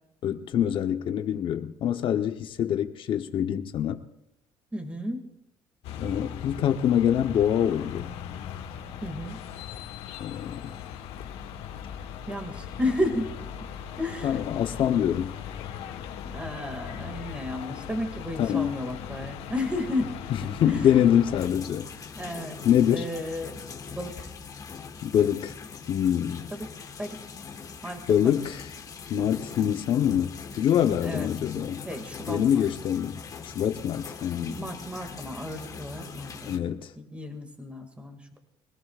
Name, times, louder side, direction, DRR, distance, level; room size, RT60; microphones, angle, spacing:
voice 1, 0.2-4.0 6.0-8.1 10.2-10.6 14.2-15.3 18.4-18.7 20.3-21.9 22.6-23.1 25.0-25.5 25.9-26.5 28.1-28.7 29.1-31.8 32.3-34.6 36.5-36.9, left 9 dB, 55° left, 0.9 m, -25 dB
voice 2, 4.7-5.2 9.0-9.4 12.3-13.3 14.0-14.4 16.3-20.2 20.4-21.0 22.1-22.6 22.9-23.6 23.9-24.3 26.5-26.7 27.0-27.2 27.8-28.4 31.0-31.6 31.8-32.7 34.4-36.6 37.0-38.4, left 1 dB, 10° right, 2.2 m, -33 dB
sound 1, 5.8-21.5, left 8 dB, 75° left, 1.3 m, -39 dB
sound 2, 21.4-36.6, left 5 dB, 35° left, 1.4 m, -42 dB
23.5 x 18.0 x 2.5 m
cardioid pair, 120°, 10 cm